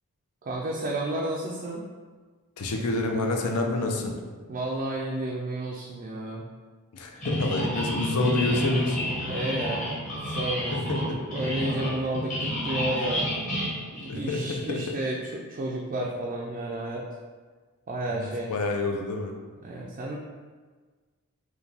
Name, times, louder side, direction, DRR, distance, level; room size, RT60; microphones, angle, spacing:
voice 1, 0.4-1.9 4.5-6.4 9.2-13.3 13.9-17.1 17.9-18.5 19.6-20.2, right 1 dB, 35° right, -2 dB, 0.3 m, -32 dB
voice 2, 2.6-4.1 6.9-9.0 10.7-11.2 14.1-14.9 18.1-19.3, left 2 dB, 80° left, 2 dB, 0.6 m, -28 dB
sound 1, 7.2-14.6, equal, 35° left, 1.2 m, -30 dB
4.7 x 2.2 x 3.3 m, 1.4 s
head